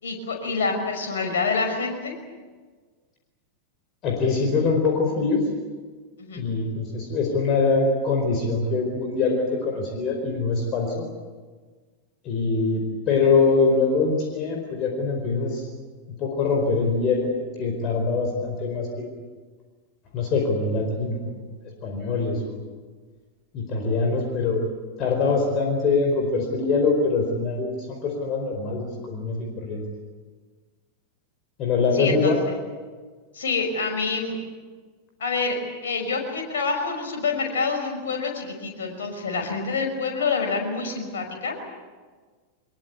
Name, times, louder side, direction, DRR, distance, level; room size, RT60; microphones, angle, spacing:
voice 1, 0.0-2.1 6.2-6.4 31.9-32.6 33.3-34.3 35.2-35.6 35.8-41.5, left 4 dB, 65° left, 3 dB, 5.7 m, -27 dB
voice 2, 4.0-5.4 6.4-11.1 12.2-15.7 16.2-17.3 17.6-19.1 20.1-21.3 21.8-22.6 23.5-24.6 25.0-29.8 31.6-32.4, left 4 dB, 35° left, 2 dB, 4.7 m, -23 dB
24.0 x 22.5 x 8.4 m, 1.4 s
figure-of-eight pair, 90°, 0 cm